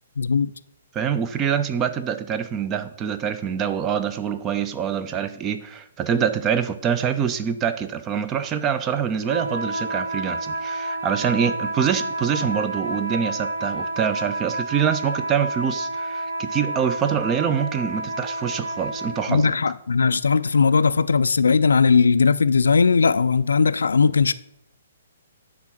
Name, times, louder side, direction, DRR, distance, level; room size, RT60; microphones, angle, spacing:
voice 1, 0.2-0.5 19.3-24.3, left 5 dB, 70° left, 0.3 m, -18 dB
voice 2, 0.9-19.5, right 8 dB, 20° right, 0.5 m, -25 dB
sound 1, 9.2-19.4, right 2 dB, 70° right, 2.2 m, -30 dB
9.4 x 3.7 x 5.8 m
figure-of-eight pair, 125°, 0 cm